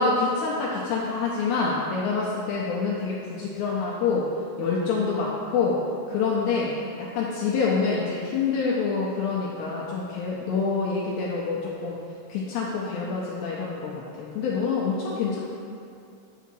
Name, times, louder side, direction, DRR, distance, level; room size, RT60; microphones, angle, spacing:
voice 1, 0.0-4.3 4.6-5.8 6.1-6.7 7.0-12.0 12.3-15.4, left 4 dB, 90° left, -4 dB, 2.5 m, -26 dB
8.1 x 6.8 x 3.1 m, 2.4 s
omnidirectional pair, 5.6 m